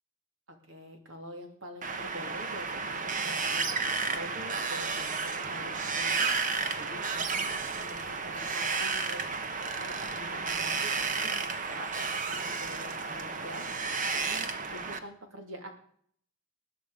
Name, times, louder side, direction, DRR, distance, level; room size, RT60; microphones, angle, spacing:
voice 1, 0.5-15.7, equal, 65° right, 4 dB, 2.8 m, -46 dB
Wind, 1.8-15.0, right 4 dB, 35° right, 1.0 m, -32 dB
20.0 x 9.2 x 5.0 m, 0.62 s
head